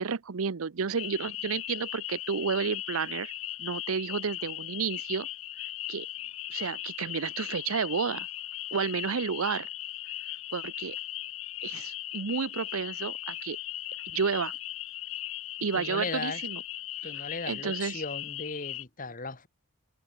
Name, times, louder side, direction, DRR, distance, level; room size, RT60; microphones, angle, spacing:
voice 1, 0.0-3.3 3.6-5.3 5.9-6.1 6.5-8.3 8.7-9.7 10.5-11.0 11.6-13.6 14.1-14.5 15.6-16.6 17.5-18.0, right 5 dB, 80° right, 0.7 m, -31 dB
sound 1, 1.0-18.8, left 15 dB, 75° left, 0.8 m, -38 dB
voice 2, 15.7-16.4 17.0-19.5, left 3 dB, 40° left, 2.1 m, -37 dB
open air
head